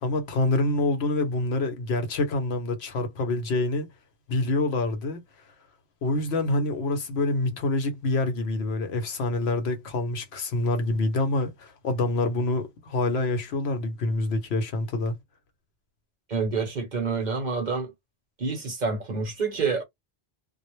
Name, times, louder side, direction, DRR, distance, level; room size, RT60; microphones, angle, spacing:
voice 1, 0.0-3.9 4.3-5.2 6.0-15.2, left 2 dB, 70° left, 0.9 m, -26 dB
voice 2, 16.3-17.9 18.4-19.8, right 4 dB, 45° right, 0.8 m, -28 dB
2.2 x 2.0 x 3.0 m
omnidirectional pair, 1.2 m